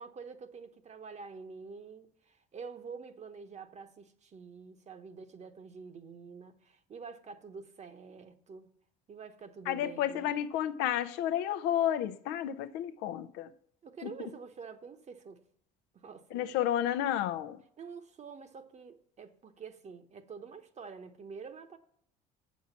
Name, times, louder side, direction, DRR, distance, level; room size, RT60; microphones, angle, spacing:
voice 1, 0.0-8.7 9.1-10.4 13.8-15.4 15.9-16.6 17.8-21.8, right 5 dB, 40° right, 1.1 m, -47 dB
voice 2, 9.7-13.5 14.0-14.1 16.3-17.6, left 11 dB, 75° left, 0.6 m, -31 dB
8.2 x 6.4 x 7.0 m
supercardioid pair, 75°, 18 cm